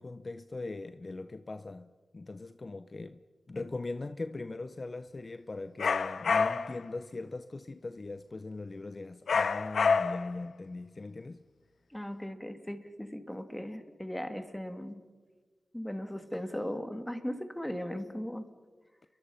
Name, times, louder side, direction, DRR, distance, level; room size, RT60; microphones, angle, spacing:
voice 1, 0.0-3.2 3.5-11.4, left 3 dB, 45° left, 0.8 m, -40 dB
sound 1, 5.8-6.8 9.3-10.4, left 5 dB, 80° left, 0.6 m, -27 dB
voice 2, 11.9-15.0 15.7-18.5, equal, 10° left, 2.5 m, -38 dB
29.5 x 23.5 x 5.7 m
cardioid pair, 45°, 0 cm